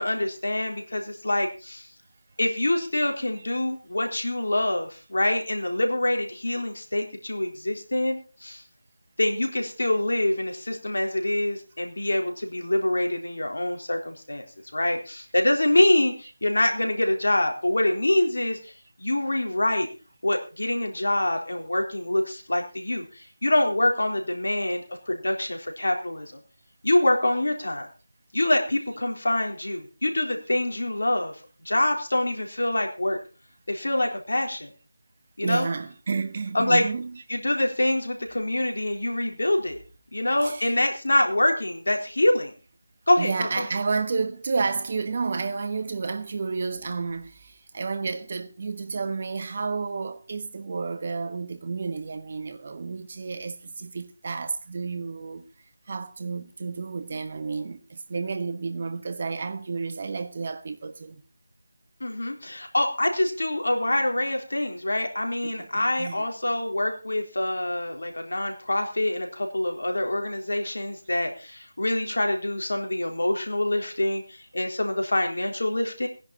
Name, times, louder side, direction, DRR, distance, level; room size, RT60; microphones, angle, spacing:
voice 1, 0.0-1.9 2.4-8.6 9.2-14.4 14.7-18.7 19.0-19.9 20.2-26.4 26.8-27.9 28.3-33.2 33.7-34.7 35.4-35.7 36.5-36.8 37.3-39.8 40.1-42.5 43.1-43.7 62.0-76.1, left 1 dB, 65° left, 3.9 m, -25 dB
voice 2, 35.4-37.2 40.4-40.7 43.1-55.4 55.9-61.2 65.4-66.2, right 4 dB, 35° right, 1.4 m, -31 dB
19.0 x 10.5 x 4.2 m
figure-of-eight pair, 165°, 0 cm